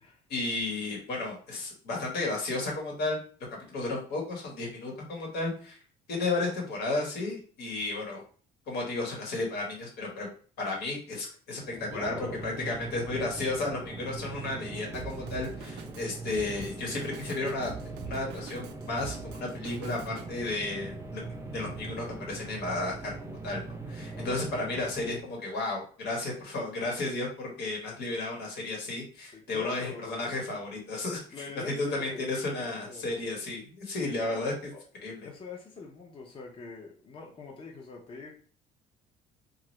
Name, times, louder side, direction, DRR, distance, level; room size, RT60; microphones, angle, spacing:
voice 1, 0.3-3.2 3.5-5.8 6.1-8.2 8.7-10.3 10.6-17.7 18.0-21.2 21.5-31.5 31.8-34.5 35.0-35.3, left 2 dB, 80° left, -1 dB, 1.3 m, -33 dB
sound 1, 11.5-25.4, right 3 dB, 15° right, 0.5 m, -41 dB
voice 2, 11.9-12.4 12.8-12.9 24.1-24.4 29.3-30.4 31.3-33.1 34.1-34.5 35.2-38.3, left 4 dB, 30° left, 0 dB, 0.6 m, -44 dB
Drum kit, 14.9-20.3, right 7 dB, 85° right, 0.4 m, -45 dB
2.8 x 2.4 x 3.1 m, 0.42 s
cardioid pair, 110°, 17 cm